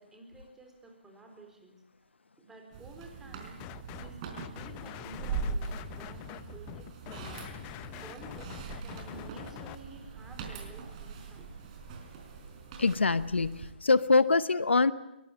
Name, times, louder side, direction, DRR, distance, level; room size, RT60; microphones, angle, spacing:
voice 1, 0.0-1.8 2.4-3.6 3.9-11.5, right 2 dB, 5° right, 2 dB, 4.1 m, -51 dB
sound 1, 2.7-13.7, right 5 dB, 30° right, 4.6 m, -41 dB
sound 2, 3.6-4.1 4.4-9.7, left 14 dB, 25° left, 0.9 m, -44 dB
voice 2, 12.8-14.9, left 3 dB, 85° left, 16 dB, 1.0 m, -24 dB
22.5 x 19.5 x 8.9 m, 0.91 s
hypercardioid pair, 145°, 6 cm